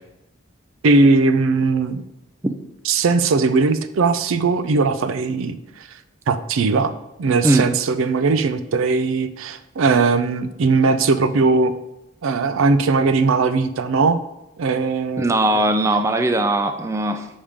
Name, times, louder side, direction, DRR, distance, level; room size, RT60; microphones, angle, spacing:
voice 1, 0.8-2.0 2.9-5.6 6.3-6.9 7.2-11.7 12.2-14.2 14.6-15.6, right 4 dB, 75° right, 12 dB, 0.4 m, -19 dB
voice 2, 15.2-17.3, right 1 dB, 15° right, 5 dB, 0.3 m, -19 dB
7.1 x 3.5 x 5.0 m, 0.89 s
head